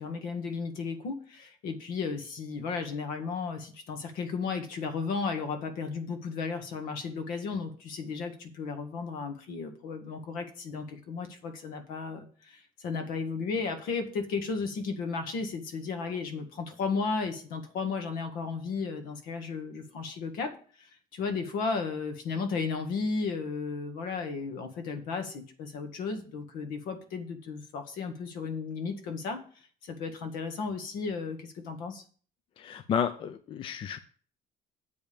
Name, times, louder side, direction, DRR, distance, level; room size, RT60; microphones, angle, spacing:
voice 1, 0.0-20.5 20.8-29.4 29.8-32.0, left 4 dB, 75° left, 6 dB, 1.8 m, -34 dB
voice 2, 32.6-34.0, left 8 dB, 35° left, 11 dB, 0.5 m, -31 dB
7.8 x 5.2 x 7.1 m, 0.43 s
cardioid pair, 165°, 15 cm